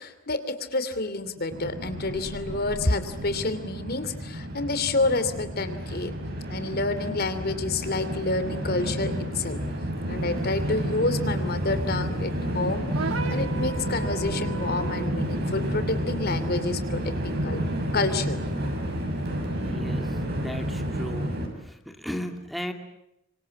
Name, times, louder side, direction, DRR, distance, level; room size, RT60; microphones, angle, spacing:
voice 1, 0.0-6.1 6.5-9.6 10.1-18.4, left 2 dB, 50° left, 11 dB, 2.8 m, -29 dB
Train, 1.5-21.5, equal, 55° right, 7.2 m, -30 dB
sound 1, 12.9-15.2, right 5 dB, 90° right, 1.7 m, -35 dB
voice 2, 19.6-20.1 20.3-21.3 21.7-22.7, equal, ahead, 5 dB, 2.4 m, -35 dB
26.5 x 25.5 x 8.5 m, 0.85 s
head